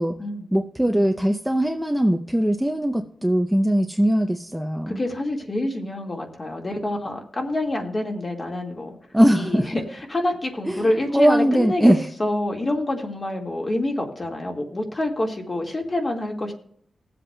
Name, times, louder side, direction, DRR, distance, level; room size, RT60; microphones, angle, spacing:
voice 1, 0.5-5.0 9.1-9.7 10.7-12.0, right 1 dB, 5° right, 4 dB, 0.5 m, -20 dB
voice 2, 4.9-8.9 9.3-16.5, left 1 dB, 30° left, 1 dB, 1.7 m, -27 dB
20.0 x 7.7 x 2.2 m, 0.65 s
wide cardioid pair, 145°, 0 cm